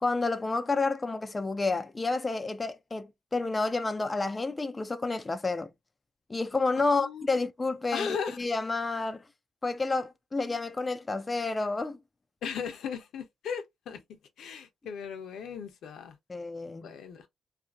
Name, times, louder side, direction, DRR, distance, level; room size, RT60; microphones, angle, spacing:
voice 1, 0.0-5.7 6.3-9.2 9.6-12.0 16.3-16.9, left 3 dB, 25° left, 0.4 m, -30 dB
voice 2, 6.8-7.2 7.9-8.4 12.4-14.0 14.4-16.1 16.8-17.3, left 7 dB, 80° left, 0.6 m, -36 dB
2.6 x 2.5 x 2.3 m
cardioid pair, 70°, 0 cm